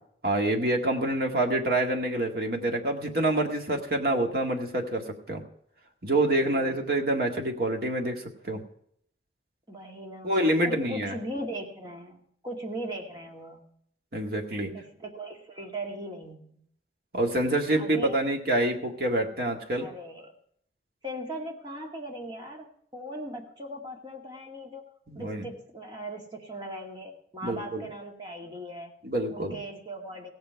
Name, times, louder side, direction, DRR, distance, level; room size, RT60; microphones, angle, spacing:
voice 1, 0.2-5.4 6.0-8.6 10.2-11.1 14.1-14.7 17.1-19.9 25.1-25.5 27.4-27.8 29.0-29.6, right 1 dB, 55° right, 2 dB, 2.0 m, -27 dB
voice 2, 6.3-7.0 9.7-13.7 14.7-16.6 17.8-18.3 19.8-20.3 21.0-24.8 25.1-28.9 29.3-30.3, right 1 dB, 25° right, 1 dB, 2.1 m, -39 dB
17.0 x 8.0 x 4.7 m, 0.67 s
head